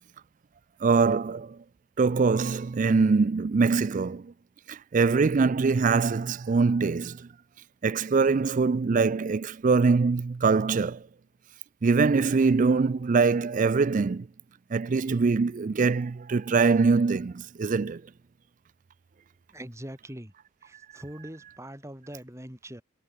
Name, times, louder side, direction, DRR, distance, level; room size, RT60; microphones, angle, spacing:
voice 1, 0.8-1.6 2.0-4.3 4.7-7.3 7.8-11.0 11.8-14.3 14.7-18.0, right 4 dB, 35° right, 0.3 m, -23 dB
voice 2, 19.5-20.3 20.6-22.8, equal, 15° right, 4.1 m, -42 dB
head